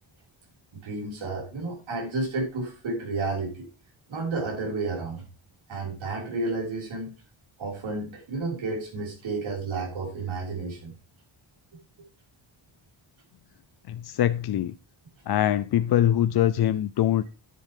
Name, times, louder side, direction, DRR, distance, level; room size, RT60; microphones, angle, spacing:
voice 1, 0.7-3.7 4.1-5.3 5.7-7.1 7.6-10.9, right 3 dB, 75° right, 5.6 m, -31 dB
voice 2, 13.9-14.7 15.3-17.3, left 11 dB, 55° left, 0.5 m, -23 dB
10.0 x 10.0 x 3.7 m
wide cardioid pair, 180°, 48 cm